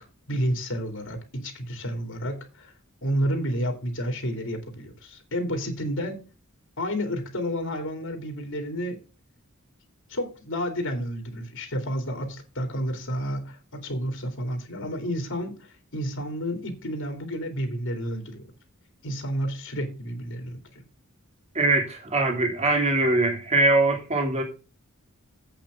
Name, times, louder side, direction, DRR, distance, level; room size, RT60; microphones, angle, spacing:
voice 1, 0.3-2.7 3.0-6.2 6.8-9.0 10.1-18.4 19.0-20.8, equal, 65° left, 2.6 m, -30 dB
voice 2, 21.5-24.4, right 2 dB, 30° right, 2.9 m, -22 dB
8.3 x 5.9 x 6.2 m
head